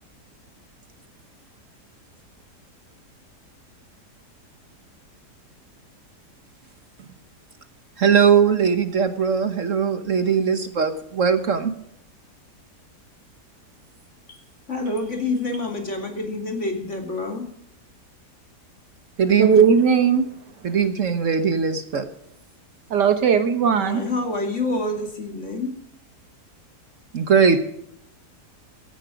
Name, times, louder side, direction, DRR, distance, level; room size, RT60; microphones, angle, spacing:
voice 1, 8.0-11.7 19.2-19.6 20.6-22.1 27.1-27.6, right 6 dB, 55° right, 1.3 m, -20 dB
voice 2, 14.7-17.4 23.8-25.7, left 2 dB, 45° left, 3.0 m, -27 dB
voice 3, 19.4-20.2 22.9-24.0, right 7 dB, 85° right, 2.0 m, -17 dB
16.0 x 11.0 x 5.0 m
omnidirectional pair, 1.8 m